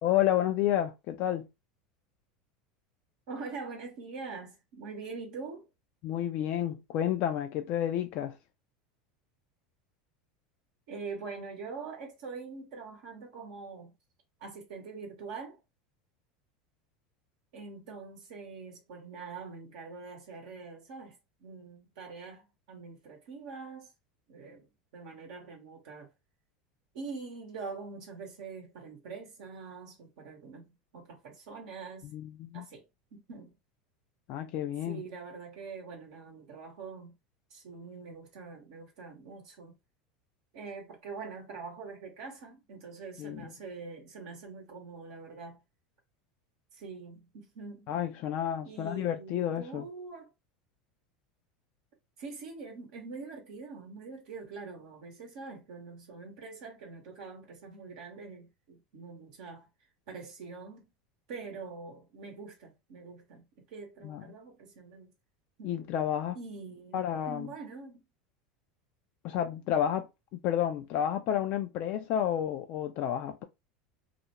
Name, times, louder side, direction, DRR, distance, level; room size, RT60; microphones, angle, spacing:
voice 1, 0.0-1.5 6.0-8.4 32.1-32.7 34.3-35.0 43.2-43.4 47.9-49.9 64.0-64.2 65.6-66.4 66.9-67.5 69.2-70.1 70.4-73.4, left 10 dB, 55° left, 0.3 m, -30 dB
voice 2, 3.3-5.7 10.9-13.9 14.4-15.6 17.5-23.9 24.3-26.1 26.9-32.1 32.5-33.5 34.8-37.1 37.5-39.7 40.5-45.6 46.7-47.9 48.6-50.3 52.2-59.7 60.1-60.9 61.3-65.1 65.6-65.7 66.3-68.0, right 4 dB, 70° right, 0.8 m, -44 dB
2.4 x 2.1 x 2.9 m
hypercardioid pair, 90°, 4 cm